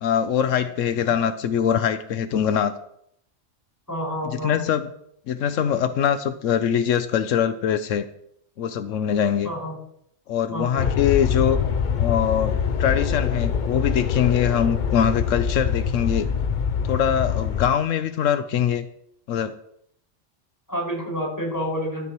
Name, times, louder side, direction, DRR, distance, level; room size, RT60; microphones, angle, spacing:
voice 1, 0.0-2.8 4.3-4.9 5.3-8.1 8.6-9.5 10.3-11.6 12.0-16.3 16.8-18.8 19.3-19.5, left 8 dB, 85° left, 10 dB, 1.1 m, -23 dB
voice 2, 3.9-4.6 9.4-9.8 10.5-10.7 20.7-22.1, equal, 15° left, -3 dB, 5.5 m, -29 dB
sound 1, 10.8-17.7, left 7 dB, 50° left, 0.7 m, -24 dB
16.5 x 12.5 x 3.0 m, 0.72 s
omnidirectional pair, 1.3 m